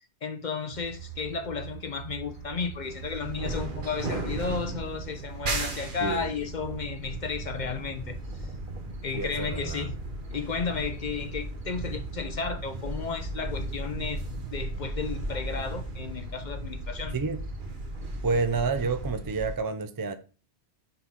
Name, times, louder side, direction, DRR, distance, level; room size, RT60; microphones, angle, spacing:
voice 1, 0.0-8.5 9.0-10.0 10.3-17.2, left 5 dB, 50° left, 0.7 m, -33 dB
sound 1, 0.7-19.6, right 2 dB, 50° right, 1.3 m, -36 dB
voice 2, 9.1-9.9 17.1-17.4 18.2-20.1, right 4 dB, 35° right, 0.3 m, -29 dB
6.7 x 3.7 x 5.7 m
omnidirectional pair, 1.1 m